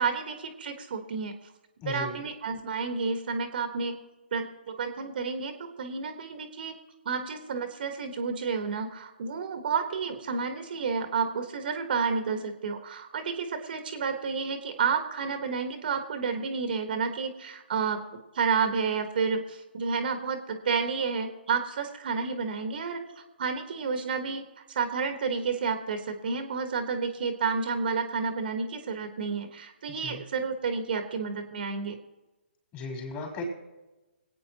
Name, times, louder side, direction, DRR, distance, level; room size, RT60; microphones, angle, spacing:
voice 1, 0.0-1.3 1.8-4.0 4.3-6.8 7.0-18.0 18.3-23.0 23.4-24.4 24.7-32.0, right 5 dB, 55° right, 6 dB, 1.5 m, -30 dB
voice 2, 1.8-2.2 29.9-30.2 32.7-33.4, left 4 dB, 25° left, 1 dB, 4.3 m, -36 dB
25.5 x 9.1 x 3.0 m, 1.1 s
figure-of-eight pair, 140°, 6 cm